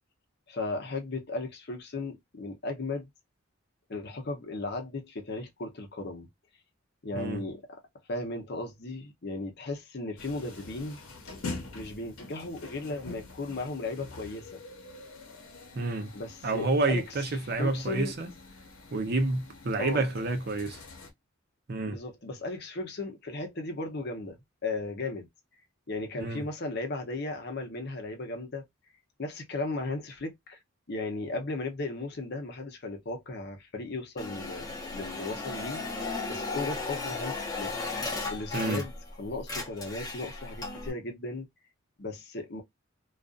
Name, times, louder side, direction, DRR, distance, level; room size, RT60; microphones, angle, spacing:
voice 1, 0.5-3.1 3.9-6.3 7.0-7.6 8.1-11.0 11.7-14.6 16.1-17.0 17.6-18.1 19.8-20.1 21.9-25.3 25.9-28.7 29.2-30.6 30.9-36.0 36.3-37.7 38.3-38.9 39.2-41.5 42.0-42.6, left 2 dB, 50° left, 0.7 m, -36 dB
sound 1, 10.2-21.1, left 3 dB, 80° left, 0.8 m, -45 dB
voice 2, 15.7-16.1 16.4-18.3 18.9-20.8 21.7-22.0 26.2-26.4 38.5-38.8, right 2 dB, 45° right, 0.6 m, -29 dB
sound 2, 34.2-39.1 39.4-40.9, left 3 dB, 20° left, 0.8 m, -35 dB
2.4 x 2.4 x 2.3 m
head